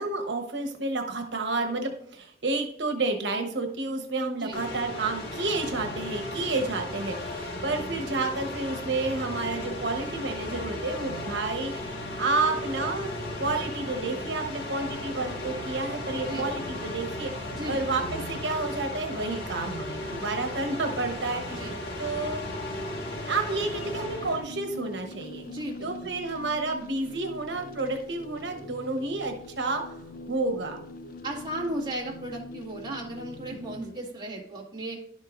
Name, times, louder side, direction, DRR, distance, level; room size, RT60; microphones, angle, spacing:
voice 1, 0.0-13.1 13.4-21.7 22.0-22.4 23.3-25.4 25.8-29.8 30.3-30.8 33.5-33.9, right 3 dB, 85° right, 4 dB, 1.1 m, -30 dB
sound 1, 4.5-24.4, left 1 dB, 75° left, 1.8 m, -35 dB
voice 2, 17.5-18.1 21.5-21.7 25.5-26.1 31.2-35.0, right 1 dB, 25° right, -4 dB, 2.1 m, -36 dB
sound 2, 23.6-33.8, left 2 dB, 50° left, 0.5 m, -44 dB
11.5 x 7.4 x 2.6 m, 0.66 s
head